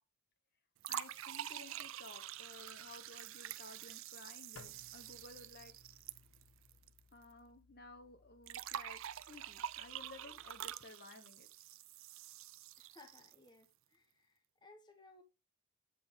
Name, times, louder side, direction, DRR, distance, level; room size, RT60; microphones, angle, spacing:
sound 1, 0.8-7.0 7.2-7.3 8.5-13.5, right 11 dB, 65° right, 0.4 m, -47 dB
voice 1, 0.9-5.7 7.1-11.5, left 3 dB, 45° left, 1.1 m, -56 dB
sound 2, 4.6-10.8, left 4 dB, 70° left, 0.8 m, -64 dB
voice 2, 12.8-15.2, left 2 dB, 20° left, 1.0 m, -62 dB
8.6 x 5.5 x 3.5 m
head